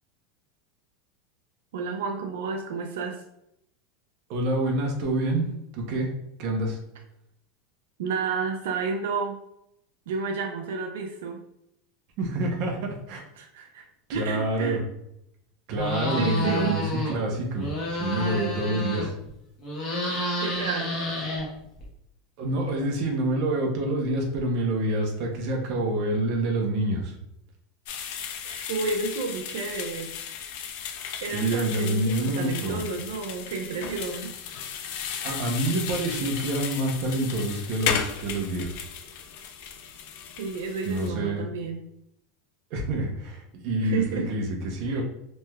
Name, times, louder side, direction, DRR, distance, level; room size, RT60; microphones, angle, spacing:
voice 1, 1.7-3.2 8.0-9.4 10.1-11.4 13.4-13.8 14.1-14.8 16.1-16.7 20.4-21.0 28.4-30.1 31.2-34.3 40.4-41.8 43.8-44.3 44.8-45.0, right 4 dB, 80° right, 3 dB, 0.4 m, -31 dB
voice 2, 4.3-5.5 5.7-6.1 6.4-6.8 12.2-13.2 14.1-14.8 15.7-17.7 18.0-19.1 22.4-27.1 31.3-32.8 35.2-38.8 40.8-41.4 42.7-45.0, right 1 dB, 45° right, 1 dB, 0.6 m, -27 dB
sound 1, 15.7-17.2 17.5-19.3 19.6-21.8, left 1 dB, 25° left, 1.0 m, -30 dB
sound 2, 27.9-41.1, left 7 dB, 55° left, 0.4 m, -35 dB
3.2 x 3.0 x 2.2 m, 0.78 s
supercardioid pair, 165°, 0 cm